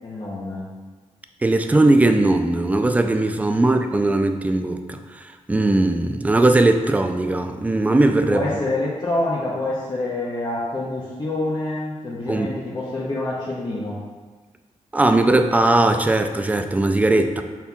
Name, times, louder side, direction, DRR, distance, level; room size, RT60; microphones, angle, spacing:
voice 1, 0.0-0.7 3.6-3.7 8.3-14.0, left 2 dB, 35° left, -7 dB, 0.7 m, -27 dB
voice 2, 1.4-8.4 12.3-12.5 14.9-17.4, right 2 dB, 10° right, 7 dB, 0.3 m, -19 dB
5.3 x 4.3 x 2.3 m, 1.4 s
cardioid pair, 95°, 12 cm